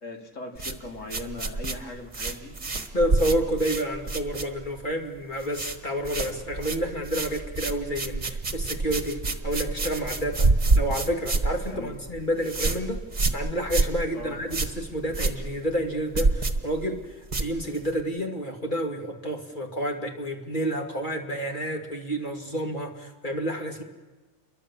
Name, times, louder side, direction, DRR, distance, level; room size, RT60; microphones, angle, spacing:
voice 1, 0.0-2.6 11.7-12.0 14.1-14.4, left 2 dB, 75° left, 3 dB, 3.1 m, -39 dB
sound 1, 0.5-4.9 5.2-5.8 6.0-18.0, right 3 dB, 35° right, 1.7 m, -28 dB
voice 2, 2.9-10.5 10.8-13.0 13.3-23.8, equal, 40° left, 2 dB, 2.6 m, -29 dB
29.0 x 23.0 x 7.3 m, 1.3 s
omnidirectional pair, 1.3 m